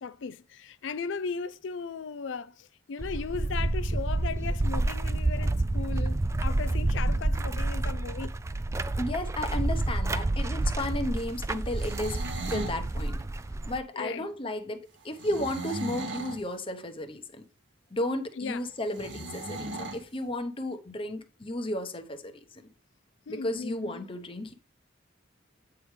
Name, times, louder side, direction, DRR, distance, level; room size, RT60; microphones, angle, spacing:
voice 1, 0.0-8.4 13.9-14.3 18.4-18.6 23.3-24.1, left 5 dB, 80° left, 0.4 m, -37 dB
sound 1, 3.0-13.8, right 2 dB, 15° right, 0.3 m, -29 dB
voice 2, 9.0-12.2 12.5-13.2 13.7-17.4 17.9-22.6 23.3-24.5, left 1 dB, 30° left, 0.9 m, -33 dB
sound 2, 11.6-12.8 15.2-16.4 18.9-20.0, right 2 dB, 75° right, 1.6 m, -37 dB
8.6 x 4.8 x 3.2 m
head